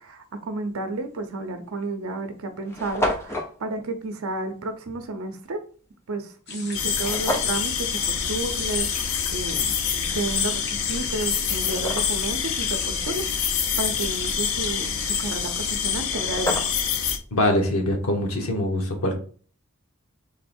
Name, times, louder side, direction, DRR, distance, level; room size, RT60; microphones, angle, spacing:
voice 1, 0.0-5.6 6.1-13.5 13.8-16.7, right 2 dB, 75° right, 7 dB, 0.6 m, -32 dB
sound 1, 1.2-1.3 2.1-2.2 2.3-2.4 2.6-3.5 7.0-7.6 10.5-10.6 11.2-12.3 15.7-15.8 16.0-17.0, equal, 10° left, 0.7 m, -30 dB
sound 2, 6.5-15.7, left 4 dB, 50° left, 1.3 m, -37 dB
sound 3, 6.7-17.2, left 7 dB, 65° left, 0.6 m, -26 dB
voice 2, 17.3-19.1, left 1 dB, 90° left, 2 dB, 1.3 m, -23 dB
3.9 x 3.1 x 4.3 m, 0.42 s
head